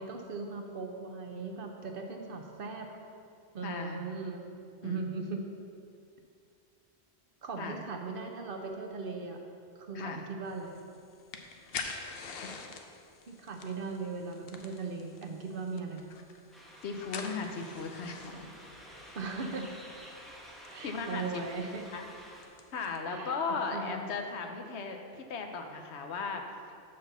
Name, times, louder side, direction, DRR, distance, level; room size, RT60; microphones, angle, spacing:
voice 1, 0.0-2.9 3.5-4.5 4.8-5.5 7.4-9.4 9.8-10.7 13.3-16.0 19.2-19.7 20.7-21.8 23.1-23.4 23.7-24.0, right 4 dB, 55° right, 3 dB, 0.9 m, -38 dB
voice 2, 3.6-4.0 4.8-5.1 7.6-7.8 9.9-10.2 12.4-12.5 16.8-18.6 20.8-21.4 21.9-22.0 22.7-25.0 25.3-26.4, left 4 dB, 80° left, 4 dB, 1.0 m, -36 dB
sound 1, 10.5-23.0, left 5 dB, 65° left, 0.8 m, -47 dB
sound 2, 16.5-22.4, equal, ahead, 0.9 m, -51 dB
6.0 x 5.2 x 6.8 m, 2.4 s
omnidirectional pair, 1.1 m